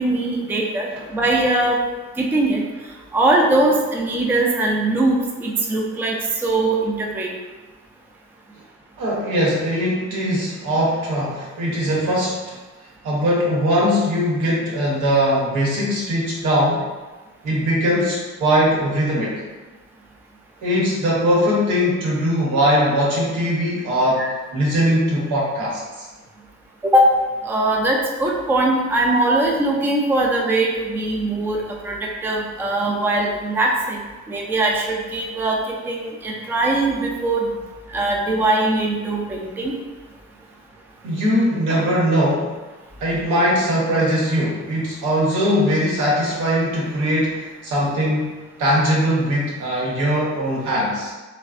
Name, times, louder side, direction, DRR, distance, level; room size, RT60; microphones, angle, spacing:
voice 1, 0.0-1.8 2.2-2.6 3.1-6.2 6.4-7.3 24.2-24.3 26.8-27.1 27.4-34.0 34.3-37.5 37.9-39.7, right 2 dB, 5° right, -1 dB, 0.3 m, -21 dB
voice 2, 9.0-12.6 13.0-16.8 17.4-19.3 20.6-24.3 24.5-26.1 41.0-42.5 43.0-51.1, equal, 85° right, -5 dB, 0.9 m, -20 dB
3.2 x 2.1 x 2.4 m, 1.2 s
cardioid pair, 90°, 30 cm